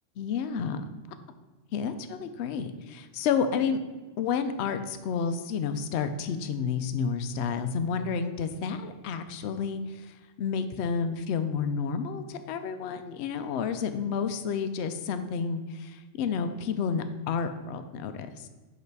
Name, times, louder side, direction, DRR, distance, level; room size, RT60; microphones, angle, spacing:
voice 1, 0.2-0.8 1.7-3.8 4.2-18.5, left 6 dB, 65° left, 9 dB, 0.8 m, -30 dB
5.4 x 5.0 x 4.6 m, 1.2 s
omnidirectional pair, 1.3 m